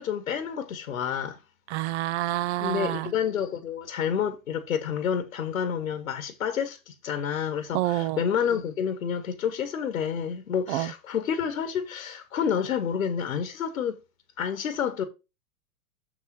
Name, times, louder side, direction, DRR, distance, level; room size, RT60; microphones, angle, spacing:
voice 1, 0.0-1.4 2.6-14.0 14.4-15.0, left 8 dB, 85° left, 1.3 m, -29 dB
voice 2, 1.7-3.1 7.7-8.2 10.7-10.9, right 15 dB, 55° right, 0.8 m, -28 dB
7.0 x 6.3 x 4.5 m
hypercardioid pair, 110°, 41 cm